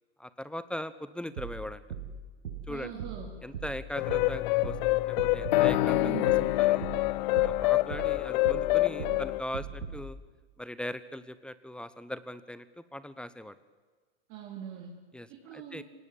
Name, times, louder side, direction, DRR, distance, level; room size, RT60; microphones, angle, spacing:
voice 1, 0.2-1.8 2.7-2.9 3.4-6.3 6.6-6.9 7.4-10.2 10.6-13.5 15.1-15.8, left 1 dB, 5° left, 15 dB, 1.1 m, -40 dB
sound 1, 1.4-10.1, right 5 dB, 70° right, 6.0 m, -41 dB
voice 2, 2.7-3.3 5.8-6.5 14.3-14.9 15.3-15.8, right 9 dB, 45° right, 0 dB, 3.9 m, -41 dB
sound 2, 4.0-9.4, left 19 dB, 50° left, 0.7 m, -26 dB
26.0 x 18.5 x 8.9 m, 1.4 s
hypercardioid pair, 100°, 30 cm